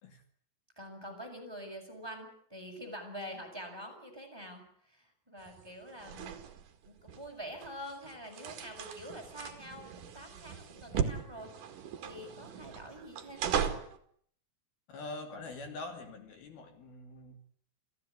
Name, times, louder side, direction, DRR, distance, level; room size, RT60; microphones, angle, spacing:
voice 1, 0.8-6.4 6.8-11.5 12.0-13.6, equal, 5° right, 3 dB, 6.3 m, -46 dB
sound 1, 5.4-14.0, right 7 dB, 55° right, 3.4 m, -38 dB
voice 2, 14.9-17.4, left 2 dB, 65° left, 6 dB, 4.4 m, -44 dB
27.5 x 15.5 x 9.5 m, 0.64 s
omnidirectional pair, 4.8 m